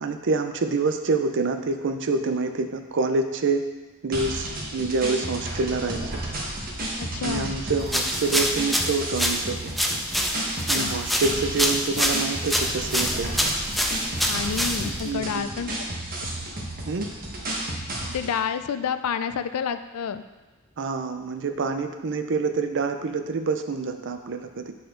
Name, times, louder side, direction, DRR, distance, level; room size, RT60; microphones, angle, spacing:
voice 1, 0.0-3.6 4.0-6.0 7.2-9.7 10.7-13.5 15.0-15.5 16.9-17.1 20.8-24.7, right 3 dB, 55° right, 7 dB, 0.6 m, -27 dB
sound 1, 4.1-18.3, right 1 dB, 40° right, 1.3 m, -32 dB
voice 2, 7.0-7.5 10.8-10.9 14.3-15.7 18.1-20.2, left 7 dB, 80° left, 11 dB, 0.4 m, -29 dB
sound 2, 7.9-15.1, equal, ahead, 0.4 m, -26 dB
9.3 x 4.2 x 3.8 m, 1.2 s
head